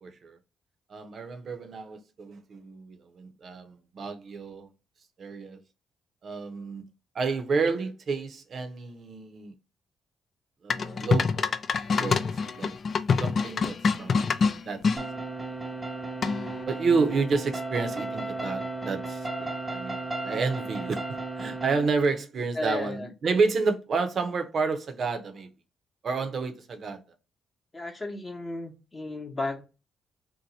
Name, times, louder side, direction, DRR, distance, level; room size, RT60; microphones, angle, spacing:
voice 1, 0.0-0.4 0.9-4.7 5.2-5.6 6.2-6.8 7.1-9.5 10.6-11.5 12.0-12.7 13.2-14.1 14.6-14.8 16.7-25.5 26.0-27.0, right 4 dB, 50° right, 0.6 m, -30 dB
sound 1, 10.7-15.0 16.2-16.6, left 5 dB, 45° left, 0.3 m, -26 dB
sound 2, 15.0-21.8, right 2 dB, 15° right, 0.6 m, -34 dB
voice 2, 22.5-23.1 27.7-29.6, left 2 dB, 25° left, 0.8 m, -34 dB
2.8 x 2.1 x 3.9 m
cardioid pair, 90°, 0 cm